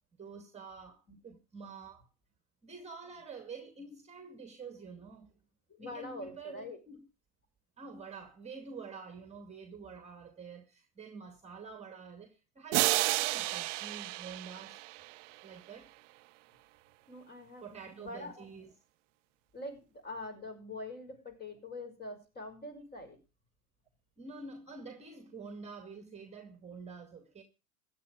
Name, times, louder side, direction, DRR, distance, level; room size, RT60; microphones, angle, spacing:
voice 1, 0.2-2.1 2.6-5.3 5.8-7.0 7.8-14.8 15.4-15.9 17.6-18.7 24.2-27.4, right 4 dB, 15° right, 2.3 m, -48 dB
voice 2, 5.7-6.8 17.1-18.6 19.5-23.2, left 2 dB, 20° left, 5.9 m, -44 dB
sound 1, 12.7-15.4, right 20 dB, 55° right, 0.6 m, -31 dB
15.5 x 10.5 x 4.8 m
hypercardioid pair, 105°, 44 cm